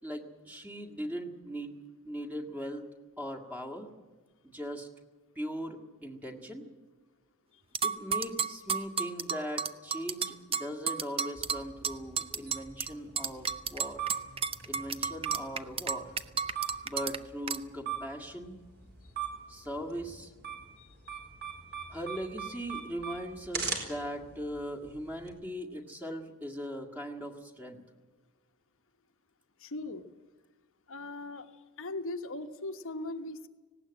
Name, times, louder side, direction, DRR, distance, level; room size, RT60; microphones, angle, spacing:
voice 1, 0.0-1.7 2.0-2.8 3.2-3.9 4.4-4.9 5.4-6.6 7.8-14.1 14.7-16.1 16.8-18.6 19.5-20.3 21.9-27.8, equal, 5° right, 3 dB, 1.9 m, -39 dB
sound 1, 7.7-12.9 13.2-17.2 17.5-17.6, right 6 dB, 25° right, 0.7 m, -32 dB
sound 2, 11.3-25.3, right 7 dB, 50° right, 4.4 m, -42 dB
voice 2, 29.6-30.0 30.9-31.5 31.8-33.5, left 2 dB, 65° left, 8 dB, 1.2 m, -39 dB
19.0 x 17.0 x 8.8 m, 1.3 s
head